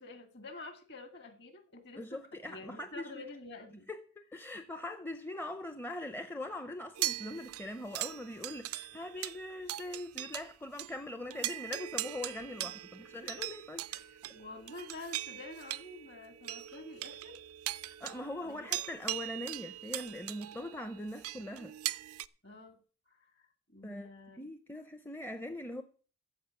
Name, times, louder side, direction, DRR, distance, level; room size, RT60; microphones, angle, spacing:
voice 1, 0.0-3.9 12.5-12.7 13.2-13.4 13.9-14.0 14.3-17.4 18.4-18.8 22.4-22.8 23.1-24.5, left 2 dB, 50° left, 2.1 m, -49 dB
voice 2, 2.0-3.1 3.9-13.8 18.0-21.7 23.8-25.8, left 1 dB, 10° left, 0.6 m, -42 dB
sound 1, 7.0-10.5 10.8-10.9 11.3-22.3, right 14 dB, 90° right, 0.5 m, -40 dB
14.5 x 5.1 x 8.2 m
head